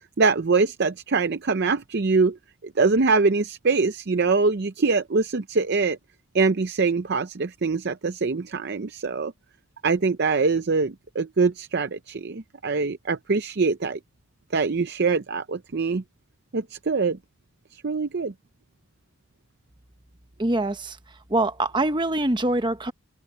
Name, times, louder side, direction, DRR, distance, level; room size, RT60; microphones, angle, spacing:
voice 1, 0.2-2.4 2.6-6.0 6.3-9.3 9.8-14.0 14.5-16.0 16.5-17.2 17.7-18.3, right 4 dB, 50° right, 0.6 m, -23 dB
voice 2, 20.4-21.0 21.3-22.9, right 2 dB, 20° right, 1.0 m, -24 dB
open air
head